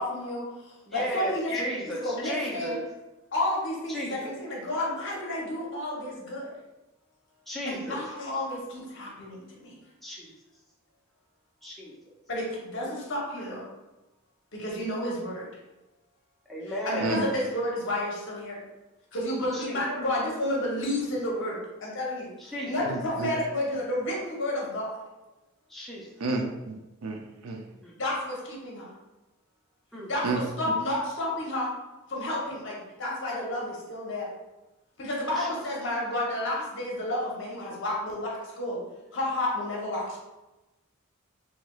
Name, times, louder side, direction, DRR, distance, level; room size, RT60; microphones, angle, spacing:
voice 1, 0.0-1.7 2.0-2.8 3.3-6.5 7.7-9.8 12.3-13.6 14.5-15.5 16.6-18.6 19.1-22.3 22.6-25.0 28.0-28.9 30.1-31.7 32.1-34.3 35.0-38.8 39.1-40.2, left 1 dB, 55° left, -3 dB, 0.8 m, -31 dB
voice 2, 0.9-2.8 3.9-4.3 7.5-8.0 10.0-10.3 11.6-11.9 12.8-12.9 16.5-17.1 19.5-19.8 22.4-22.9 25.7-26.1 27.8-27.9 29.9-30.1 35.4-35.5, equal, ahead, -5 dB, 0.5 m, -35 dB
voice 3, 22.8-23.3 26.2-27.6 30.2-30.4, right 3 dB, 75° right, 3 dB, 0.4 m, -31 dB
3.2 x 2.9 x 2.3 m, 1.0 s
head